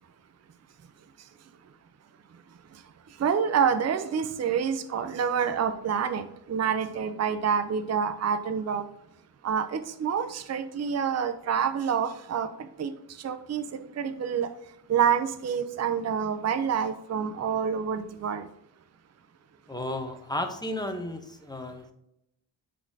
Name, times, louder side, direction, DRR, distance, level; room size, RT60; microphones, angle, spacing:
voice 1, 3.2-8.8 9.4-12.9 13.2-14.5 14.9-18.5, right 7 dB, 35° right, 10 dB, 0.5 m, -27 dB
voice 2, 19.7-21.9, left 1 dB, 10° left, 5 dB, 0.8 m, -33 dB
9.2 x 4.1 x 2.7 m, 0.80 s
wide cardioid pair, 115°, 46 cm